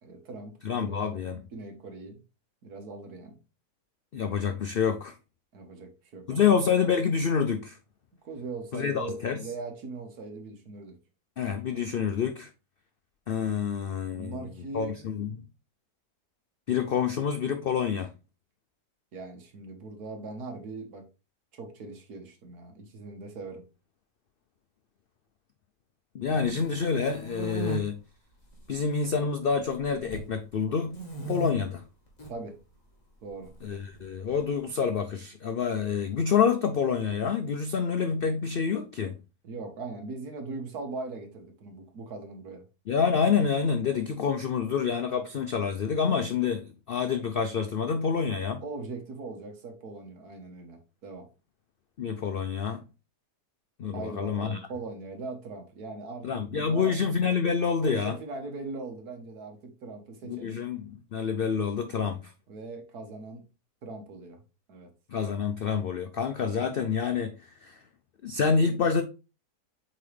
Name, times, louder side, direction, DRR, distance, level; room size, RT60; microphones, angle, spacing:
voice 1, 0.0-1.2 1.5-2.2 2.6-3.4 5.5-6.5 8.2-11.0 14.1-15.1 19.1-21.0 21.5-23.6 32.3-32.6 33.2-33.5 39.4-42.6 48.6-51.3 53.9-56.9 57.8-60.6 62.5-63.4 63.8-64.4 64.7-64.9, right 3 dB, 75° right, 1.8 m, -40 dB
voice 2, 0.6-1.4 4.1-5.1 6.3-7.8 8.7-9.5 11.4-12.5 13.3-14.5 14.7-15.3 16.7-18.1 26.1-28.0 28.7-31.0 31.3-31.8 33.6-39.1 42.9-48.6 52.0-52.8 53.8-54.6 56.2-58.2 60.2-62.3 65.1-67.8 68.2-69.0, left 6 dB, 80° left, 0.5 m, -27 dB
sound 1, 26.4-27.8 28.4-29.0 29.3-30.3 30.9-31.5 32.1-32.3 33.4-34.4, right 3 dB, 25° left, 1.9 m, -37 dB
8.1 x 3.8 x 3.3 m
omnidirectional pair, 1.7 m